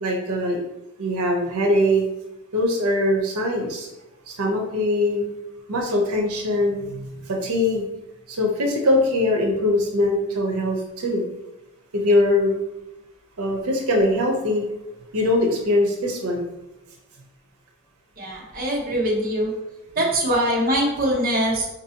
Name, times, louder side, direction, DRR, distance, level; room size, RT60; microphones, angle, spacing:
voice 1, 0.0-0.6 1.0-2.0 2.5-3.9 4.3-5.3 5.7-7.8 8.3-11.2 11.9-12.5 13.4-14.6 15.1-16.4, left 1 dB, 90° right, 1 dB, 0.7 m, -22 dB
voice 2, 18.2-19.5 20.0-21.7, right 1 dB, 40° right, -3 dB, 0.7 m, -22 dB
3.9 x 2.6 x 2.8 m, 0.94 s
head